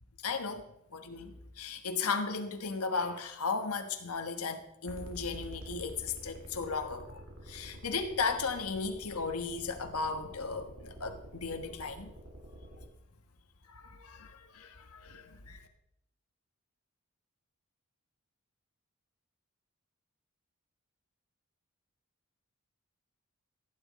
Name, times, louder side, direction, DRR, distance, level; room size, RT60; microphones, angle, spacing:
voice 1, 0.2-0.7 0.9-7.2 7.5-12.1 13.7-15.6, left 4 dB, 80° left, 6 dB, 1.3 m, -36 dB
sound 1, 4.9-12.9, right 1 dB, 65° right, 2.3 m, -48 dB
15.5 x 9.8 x 4.2 m, 0.77 s
head